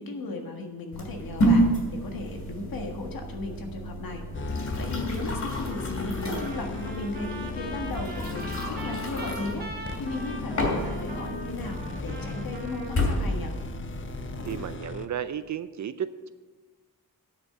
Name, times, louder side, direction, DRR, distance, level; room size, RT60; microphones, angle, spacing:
voice 1, 0.0-4.2 4.5-9.7 10.0-13.5, left 2 dB, 65° left, 3 dB, 1.7 m, -36 dB
sound 1, 0.9-14.7, right 1 dB, 50° left, 2.8 m, -31 dB
sound 2, 4.3-15.1, left 4 dB, 35° left, 0.5 m, -37 dB
Trumpet, 6.3-13.3, right 2 dB, 25° right, 1.2 m, -41 dB
voice 2, 14.5-16.3, right 9 dB, 50° right, 12 dB, 0.5 m, -33 dB
9.7 x 6.2 x 7.7 m, 1.3 s
wide cardioid pair, 170°, 37 cm